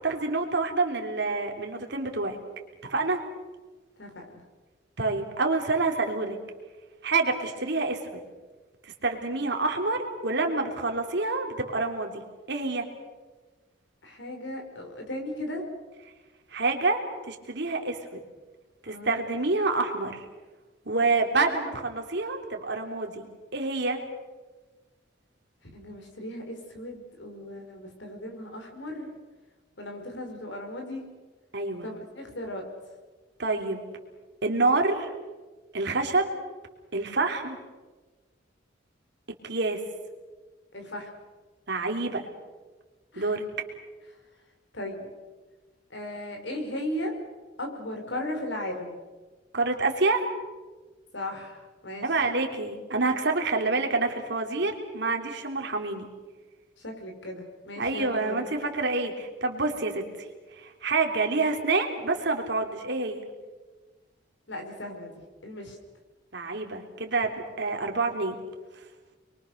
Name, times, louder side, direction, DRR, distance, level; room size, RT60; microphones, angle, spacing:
voice 1, 0.0-2.4 2.9-3.2 5.0-6.4 7.0-8.2 8.8-12.2 12.5-12.8 16.5-17.0 17.3-18.2 18.8-20.2 20.8-23.3 23.5-24.0 31.5-31.9 33.4-33.8 34.4-35.1 35.7-36.3 36.9-37.6 39.5-39.8 41.7-42.2 43.2-43.4 49.5-50.3 52.0-56.1 57.8-60.3 60.6-63.2 66.3-67.3 67.6-68.3, right 3 dB, 60° right, 3 dB, 3.4 m, -27 dB
voice 2, 4.0-4.4 14.0-15.6 18.9-19.2 25.7-29.1 29.8-31.1 31.8-32.7 40.7-41.1 43.1-43.3 44.7-45.1 45.9-47.1 47.6-49.0 51.1-52.1 56.8-58.4 64.5-65.1 65.4-65.8, left 1 dB, 65° left, 3 dB, 5.6 m, -36 dB
29.0 x 23.0 x 6.7 m, 1.3 s
head